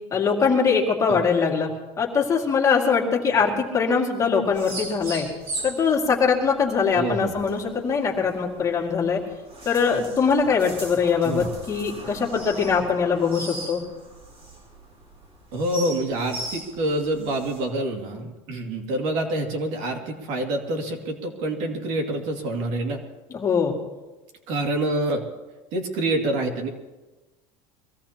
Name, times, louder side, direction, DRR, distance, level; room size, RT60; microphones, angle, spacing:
voice 1, 0.1-5.3 5.6-9.2 9.7-13.8 23.3-23.7, left 5 dB, 25° left, -1 dB, 2.2 m, -22 dB
sound 1, 4.5-17.6, right 2 dB, 40° right, 6.8 m, -38 dB
voice 2, 6.9-7.4 11.2-11.5 15.5-23.0 24.5-25.2 25.7-26.7, right 1 dB, 60° right, 3 dB, 2.4 m, -27 dB
23.5 x 16.5 x 2.9 m, 1.2 s
cardioid pair, 145°, 14 cm